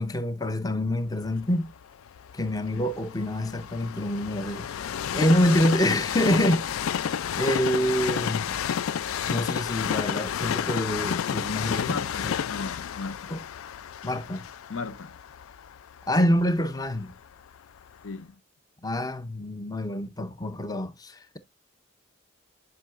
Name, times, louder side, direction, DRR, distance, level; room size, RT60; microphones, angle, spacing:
voice 1, 0.0-1.7 2.3-6.7 7.4-8.5 9.3-12.0 12.2-12.3 13.3-13.4 14.0-14.5 16.1-17.1 18.8-21.4, equal, 20° left, 0.6 m, -26 dB
Train, 1.4-17.3 17.9-18.0, left 8 dB, 90° left, 0.4 m, -31 dB
voice 2, 11.7-13.3 14.7-15.2 16.2-16.3 18.0-18.4, left 4 dB, 75° left, 0.7 m, -36 dB
10.5 x 5.5 x 2.4 m
head